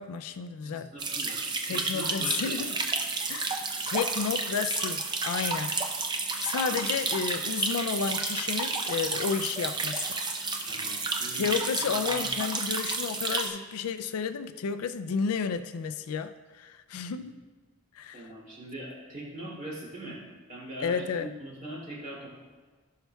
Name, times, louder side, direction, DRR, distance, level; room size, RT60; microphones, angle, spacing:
voice 1, 0.0-0.9 1.6-2.8 3.3-5.7 6.4-10.2 11.3-17.4 18.0-18.3 20.8-21.3, left 6 dB, 90° left, 10 dB, 0.4 m, -32 dB
voice 2, 0.6-1.4 1.6-2.6 6.7-6.9 10.6-11.4 12.1-12.2 17.0-17.3 18.1-20.2 20.5-22.3, right 1 dB, 35° right, -5 dB, 2.5 m, -41 dB
sound 1, 1.0-13.5, right 3 dB, 20° right, 0.5 m, -31 dB
16.0 x 5.6 x 2.3 m, 1.3 s
head